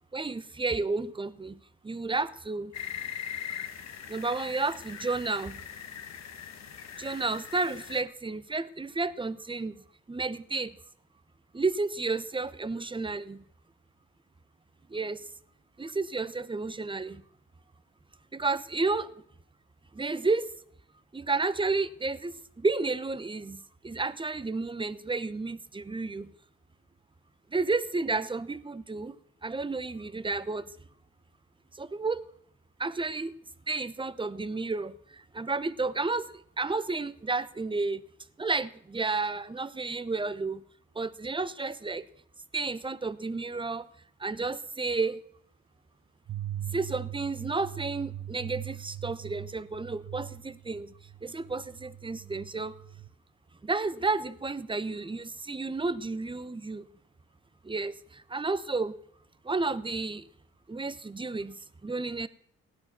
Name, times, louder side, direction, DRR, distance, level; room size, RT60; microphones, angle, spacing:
voice 1, 0.1-2.7 4.1-5.6 7.0-9.8 10.1-10.8 11.5-13.4 14.9-15.3 15.8-17.2 18.3-19.1 19.9-20.5 21.1-26.3 27.5-29.2 29.4-30.7 31.7-32.2 32.8-33.3 33.7-38.0 38.4-40.6 40.9-42.1 42.5-43.9 44.2-45.2 46.7-50.9 51.2-52.8 53.6-56.9 57.6-58.9 59.4-60.3 60.7-62.3, right 3 dB, 15° right, 0.9 m, -31 dB
sound 1, 2.7-8.0, left 8 dB, 60° left, 1.4 m, -41 dB
sound 2, 46.3-53.1, right 12 dB, 45° right, 1.1 m, -41 dB
16.5 x 11.5 x 5.9 m
cardioid pair, 90°, 30 cm